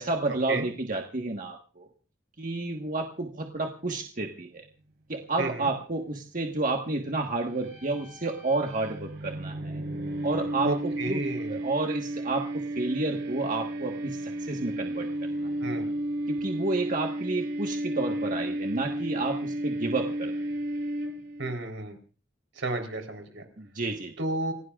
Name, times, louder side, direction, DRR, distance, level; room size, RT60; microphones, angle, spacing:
voice 1, 0.0-1.9 2.4-4.6 5.1-9.8 10.2-11.2 11.5-15.1 15.4-15.5 16.3-20.3 23.6-24.1, right 2 dB, 45° right, 2 dB, 1.4 m, -30 dB
voice 2, 5.4-5.7 10.6-11.6 15.6-15.9 21.4-22.0 22.6-23.4 24.2-24.5, right 2 dB, 80° right, 6 dB, 3.9 m, -32 dB
sound 1, 7.4-21.5, right 1 dB, 60° right, 4.3 m, -33 dB
28.5 x 17.0 x 2.5 m, 0.38 s
head